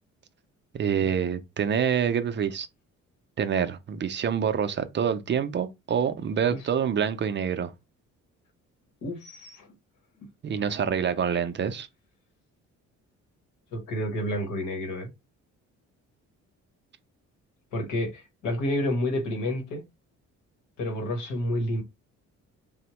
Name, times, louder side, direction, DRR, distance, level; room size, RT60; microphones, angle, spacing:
voice 1, 0.7-2.7 3.4-7.7 10.4-11.9, right 7 dB, 40° right, 0.4 m, -26 dB
voice 2, 9.0-9.7 11.3-11.4 13.7-15.1 17.7-19.8 20.8-21.8, left 1 dB, 85° left, 1.1 m, -30 dB
3.4 x 2.1 x 2.9 m
cardioid pair, 90°, 30 cm